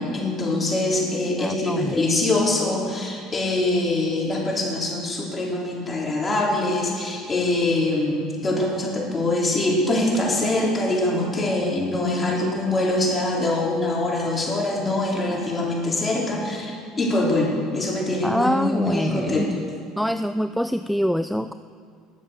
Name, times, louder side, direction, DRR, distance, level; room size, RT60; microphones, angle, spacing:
voice 1, 0.0-19.5, left 2 dB, 25° left, -3 dB, 4.5 m, -24 dB
voice 2, 1.4-1.9 18.2-19.6 20.0-21.5, equal, ahead, 11 dB, 0.4 m, -25 dB
20.0 x 7.4 x 6.7 m, 2.2 s
hypercardioid pair, 80°, 0 cm